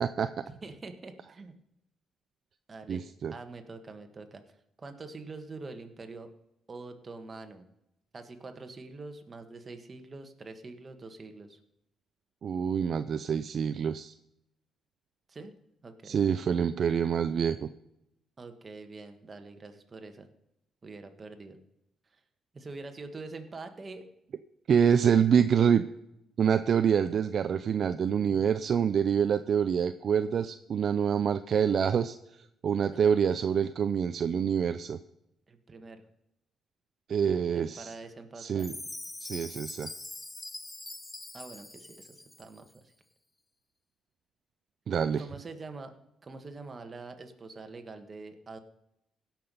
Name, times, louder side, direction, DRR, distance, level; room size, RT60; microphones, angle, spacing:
voice 1, 0.0-0.4 2.9-3.3 12.4-14.1 16.0-17.6 24.7-25.8 26.4-32.2 32.6-35.0 37.1-37.9 38.4-38.7 39.2-39.9 44.9-45.2, right 7 dB, 55° right, 11 dB, 0.4 m, -26 dB
voice 2, 0.6-1.5 2.7-4.4 4.8-6.3 6.7-7.6 8.1-11.6 15.3-15.5 15.8-16.2 18.4-20.3 20.8-21.6 22.1-22.2 22.5-24.0 35.5-36.0 37.5-38.7 41.3-42.9 45.1-45.9 46.2-48.6, right 3 dB, 35° right, 6 dB, 1.5 m, -45 dB
Chime, 38.6-42.6, left 2 dB, 15° left, 0.5 m, -43 dB
17.0 x 6.0 x 5.4 m, 0.82 s
cardioid pair, 90°, 0 cm